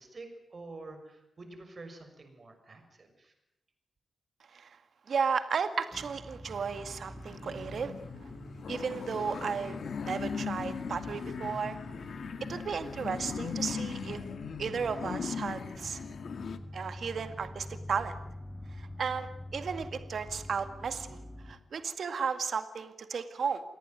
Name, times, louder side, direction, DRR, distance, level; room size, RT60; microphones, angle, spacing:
voice 1, 0.0-3.3, right 3 dB, 40° right, 6 dB, 6.2 m, -48 dB
voice 2, 5.1-7.9 8.7-11.8 12.5-14.2 14.6-16.0 16.7-18.1 18.8-23.6, right 6 dB, 65° right, 10 dB, 2.1 m, -34 dB
sound 1, 5.9-21.6, equal, 5° right, 4.6 m, -46 dB
sound 2, 6.9-16.6, left 6 dB, 70° left, 1.9 m, -39 dB
28.5 x 18.5 x 9.2 m, 0.81 s
wide cardioid pair, 120°, 0 cm